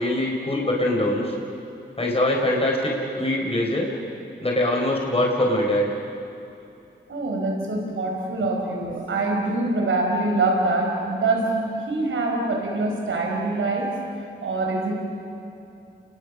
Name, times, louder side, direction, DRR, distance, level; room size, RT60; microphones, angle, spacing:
voice 1, 0.0-1.3 2.0-3.9 4.4-5.9, left 1 dB, 30° left, -1 dB, 4.9 m, -23 dB
voice 2, 7.1-14.0 14.4-14.9, right 2 dB, 85° right, 1 dB, 4.7 m, -24 dB
30.0 x 21.0 x 6.4 m, 2.8 s
cardioid pair, 50°, 20 cm